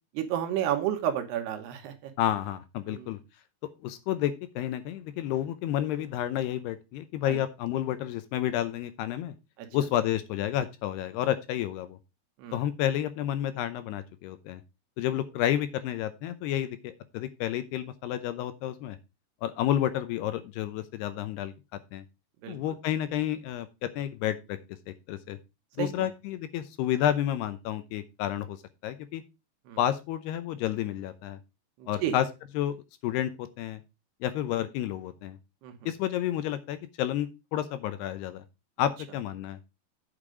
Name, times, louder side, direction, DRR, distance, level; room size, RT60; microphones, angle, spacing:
voice 1, 0.1-2.1 2.9-3.1 7.3-7.4 9.6-9.7 12.4-12.6 22.4-22.6 25.8-26.1 29.7-29.8 31.8-32.2 35.6-35.9, right 10 dB, 75° right, 7 dB, 3.0 m, -31 dB
voice 2, 2.2-3.2 3.8-9.3 9.7-12.0 12.5-14.6 15.0-19.0 19.4-21.5 21.9-22.0 22.5-24.6 25.1-25.4 25.8-28.6 28.8-29.2 29.8-31.4 31.9-32.3 32.6-32.8 33.0-33.8 34.2-35.4 35.9-38.4 38.8-39.6, left 11 dB, 80° left, 12 dB, 2.6 m, -30 dB
8.8 x 6.6 x 5.0 m, 0.25 s
omnidirectional pair, 5.1 m